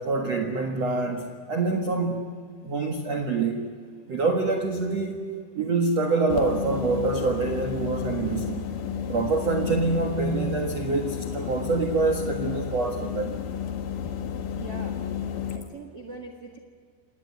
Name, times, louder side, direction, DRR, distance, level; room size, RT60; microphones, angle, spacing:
voice 1, 0.0-2.3 2.6-3.7 4.1-5.3 5.5-8.7 9.1-13.3, right 3 dB, 80° right, 4 dB, 1.5 m, -26 dB
sound 1, 6.3-15.6, left 8 dB, 70° left, 2.0 m, -32 dB
voice 2, 14.5-15.0 15.5-16.6, right 3 dB, 60° right, 5 dB, 1.6 m, -41 dB
28.5 x 19.0 x 9.6 m, 2.1 s
omnidirectional pair, 5.9 m